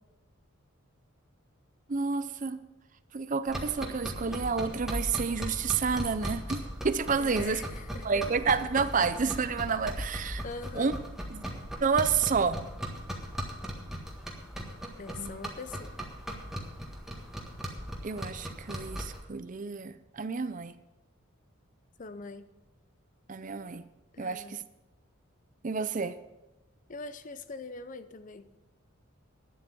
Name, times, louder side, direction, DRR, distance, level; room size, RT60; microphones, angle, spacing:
voice 1, 1.9-2.6 3.1-7.6 8.0-10.4 10.7-10.9 11.3-11.4 11.8-12.6 15.2-15.5 18.0-20.7 23.3-23.8 24.2-24.6 25.6-26.2, right 5 dB, 40° right, 13 dB, 0.5 m, -30 dB
sound 1, 3.5-19.2, equal, ahead, 1.6 m, -38 dB
voice 2, 7.2-8.1 10.4-11.0 15.0-15.9 22.0-22.5 24.1-24.6 26.9-28.5, left 3 dB, 40° left, 12 dB, 0.6 m, -42 dB
11.5 x 9.7 x 6.1 m, 1.0 s
head